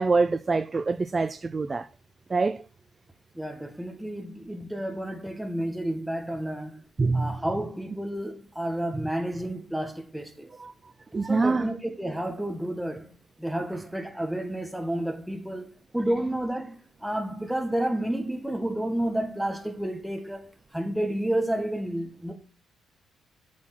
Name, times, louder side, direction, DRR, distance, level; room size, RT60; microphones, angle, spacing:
voice 1, 0.0-1.9 2.3-2.6 7.0-7.4 10.6-10.7 11.1-11.6, right 3 dB, 30° right, 0.4 m, -25 dB
voice 2, 3.3-6.8 7.1-10.5 11.3-15.7 15.9-20.5 20.7-22.3, right 1 dB, 5° right, 1.8 m, -30 dB
8.3 x 4.6 x 6.1 m
cardioid pair, 90°, 0 cm